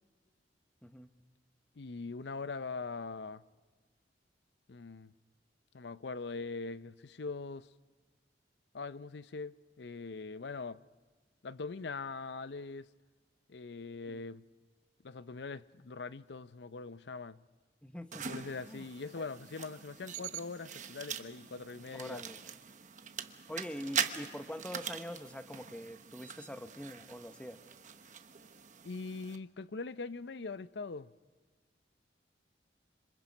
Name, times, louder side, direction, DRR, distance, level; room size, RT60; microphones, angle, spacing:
voice 1, 1.8-3.4 4.7-5.1 5.7-7.7 8.7-10.8 11.4-12.9 13.5-14.4 15.0-17.4 18.3-22.2 28.8-31.1, left 4 dB, 75° left, 0.6 m, -42 dB
voice 2, 17.8-18.3 18.7-18.9 19.2-19.3 21.9-22.4 23.5-27.6, equal, 5° left, 0.9 m, -44 dB
sound 1, 18.1-29.4, right 7 dB, 45° right, 1.1 m, -42 dB
26.5 x 26.5 x 5.3 m
head